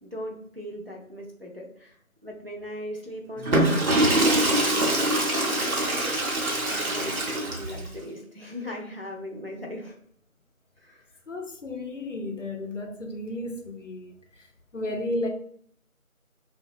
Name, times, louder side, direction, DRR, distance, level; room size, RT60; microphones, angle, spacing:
voice 1, 0.0-6.3 6.7-10.0 10.8-11.1 14.9-15.1, equal, 45° right, 0.4 m, -39 dB
Water / Toilet flush, 3.4-7.9, right 1 dB, 75° right, 0.9 m, -24 dB
voice 2, 11.3-14.1 14.7-15.3, left 1 dB, 60° left, 0.5 m, -33 dB
2.9 x 2.2 x 2.6 m
figure-of-eight pair, 170°, 43 cm